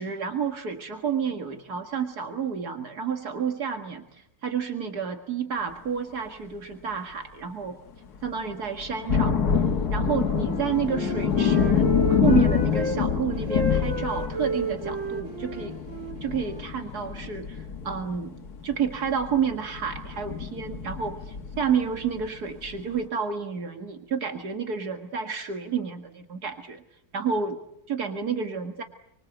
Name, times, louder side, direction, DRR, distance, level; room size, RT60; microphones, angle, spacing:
voice 1, 0.0-7.8 8.2-9.4 9.9-15.8 16.2-18.4 18.6-26.8 27.1-27.6 27.9-28.8, right 6 dB, 75° right, 6 dB, 2.2 m, -30 dB
sound 1, 8.2-8.3 8.8-22.3 22.7-22.8, left 7 dB, 75° left, 2.0 m, -26 dB
Wind instrument woodwind instrument, 10.0-13.0 13.5-17.3, right 2 dB, 50° right, 3.5 m, -33 dB
28.0 x 25.0 x 8.0 m, 0.75 s
omnidirectional pair, 1.7 m